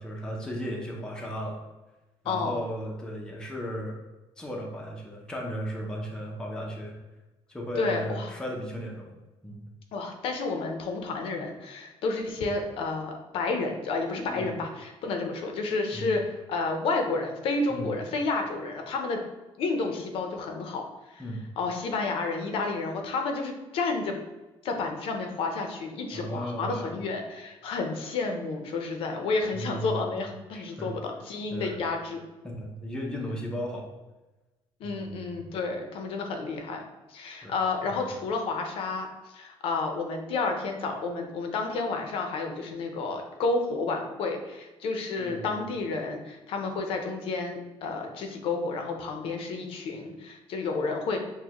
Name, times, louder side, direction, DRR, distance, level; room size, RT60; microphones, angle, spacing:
voice 1, 0.0-1.6 2.2-4.0 4.4-7.0 7.5-9.1 9.4-9.7 14.3-14.5 15.9-16.2 17.7-17.9 21.2-21.4 26.1-27.0 29.5-30.2 30.5-30.9 31.5-31.8 32.4-33.8 34.8-35.5 37.4-38.2 45.2-45.6, equal, 5° left, -1 dB, 0.5 m, -36 dB
voice 2, 2.3-2.6 7.8-8.3 9.9-19.2 19.6-21.2 21.6-24.1 24.6-32.2 34.8-36.8 37.1-39.1 39.3-51.2, left 3 dB, 60° left, 4 dB, 0.6 m, -30 dB
6.3 x 2.1 x 2.9 m, 1.1 s
cardioid pair, 175°, 11 cm